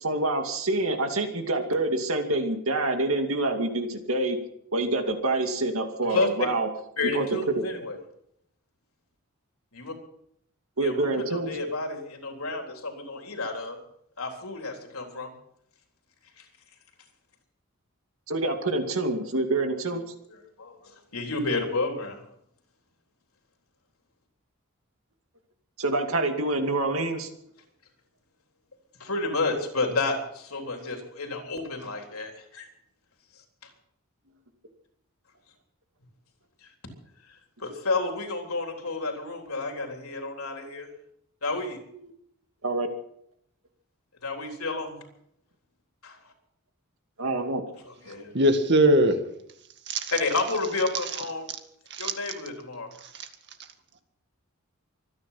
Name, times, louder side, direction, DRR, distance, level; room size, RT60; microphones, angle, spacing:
voice 1, 0.0-4.4 4.7-6.7 7.1-7.3 7.5-7.6 10.8-11.5 18.3-20.0 25.8-27.3 42.6-42.9 47.2-47.6, right 2 dB, 70° right, 2.5 m, -26 dB
voice 2, 7.0-8.0 9.7-9.9 10.8-13.8 14.2-15.3 16.4-16.5 20.3-22.2 29.0-32.7 36.6-36.7 37.3-40.9 41.4-41.8 44.2-45.1 46.0-46.2 47.9-48.3 50.1-51.5 52.0-52.9, left 3 dB, 85° left, 3.7 m, -31 dB
voice 3, 48.3-49.2 49.9-50.1 51.9-52.1, right 1 dB, 55° right, 2.0 m, -20 dB
24.5 x 10.0 x 5.8 m
head